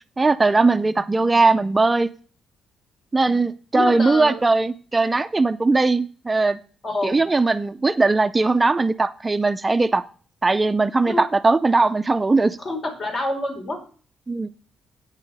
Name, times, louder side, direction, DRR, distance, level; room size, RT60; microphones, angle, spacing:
voice 1, 0.2-2.1 3.1-6.6 7.0-10.0 10.4-12.6 14.3-14.5, right 3 dB, 20° right, 11 dB, 0.5 m, -19 dB
voice 2, 3.7-4.4 6.8-7.2 11.1-11.3 12.6-13.8, left 1 dB, 45° left, 2 dB, 4.1 m, -27 dB
9.0 x 6.6 x 5.4 m, 0.40 s
cardioid pair, 90°, 0 cm